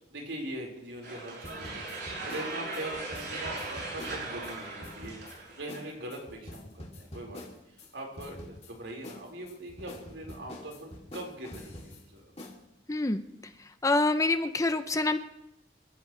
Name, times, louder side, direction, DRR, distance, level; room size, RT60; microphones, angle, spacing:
voice 1, 0.1-7.4 7.7-12.3, right 1 dB, 80° right, 0 dB, 4.8 m, -42 dB
sound 1, 1.0-5.9, right 2 dB, 65° right, 7.5 m, -39 dB
sound 2, 1.4-4.5 4.8-5.4 5.7-5.8 6.1-7.9 8.2-8.7 9.0-12.0 12.4-12.6, left 1 dB, 35° left, 2.9 m, -45 dB
voice 2, 12.9-13.2 13.8-15.2, left 2 dB, 20° left, 10 dB, 0.6 m, -26 dB
29.0 x 14.5 x 3.3 m, 0.84 s
head